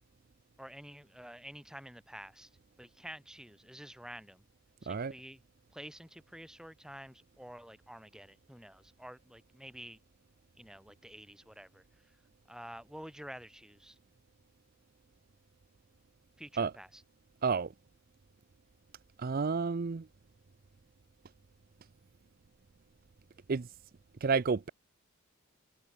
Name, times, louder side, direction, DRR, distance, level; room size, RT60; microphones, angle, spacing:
voice 1, 0.6-2.5 2.8-4.4 4.8-5.4 5.7-10.0 10.6-11.8 12.5-14.0 16.4-17.0, equal, 5° right, 7.8 m, -49 dB
voice 2, 19.2-20.0 23.5-23.7 24.2-24.7, right 5 dB, 40° right, 0.5 m, -30 dB
head